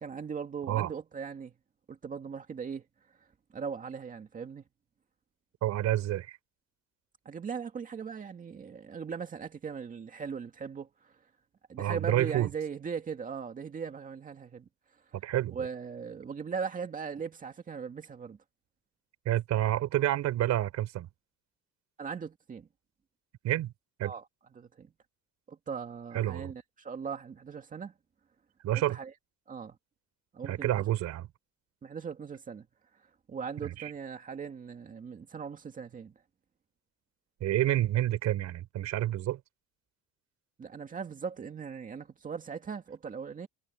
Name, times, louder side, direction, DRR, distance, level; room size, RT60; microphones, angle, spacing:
voice 1, 0.0-1.5 1.9-2.8 3.5-4.6 7.3-11.1 11.7-14.7 15.5-18.4 22.0-22.7 24.0-24.2 24.6-24.9 25.5-27.9 28.7-29.1 29.5-29.8 30.3-30.7 31.8-32.7 33.3-36.1 40.6-43.5, right 6 dB, 25° right, 2.2 m, -39 dB
voice 2, 5.6-6.4 11.8-12.5 15.1-15.6 19.3-21.1 23.4-23.7 24.0-24.1 26.1-26.5 28.6-29.0 30.4-31.3 33.6-33.9 37.4-39.4, right 13 dB, 60° right, 3.7 m, -29 dB
cardioid pair, 170°, 30 cm